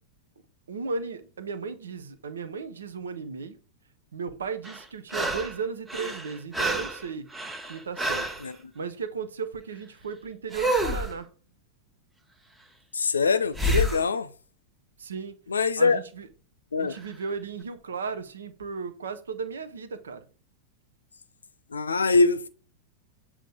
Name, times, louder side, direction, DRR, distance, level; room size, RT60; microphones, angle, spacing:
voice 1, 0.7-3.6 4.1-7.3 7.7-11.3 15.0-15.4 15.8-16.3 16.8-20.2, right 5 dB, 70° right, 1.0 m, -35 dB
sound 1, 4.6-5.6 5.9-8.5 10.5-11.2 13.5-14.1 17.0-17.1, right 1 dB, 10° right, 1.1 m, -28 dB
voice 2, 8.4-8.7 12.9-14.3 15.5-16.0 16.7-17.0 21.7-22.5, left 4 dB, 75° left, 0.6 m, -23 dB
7.7 x 3.2 x 5.1 m
figure-of-eight pair, 90°, 0 cm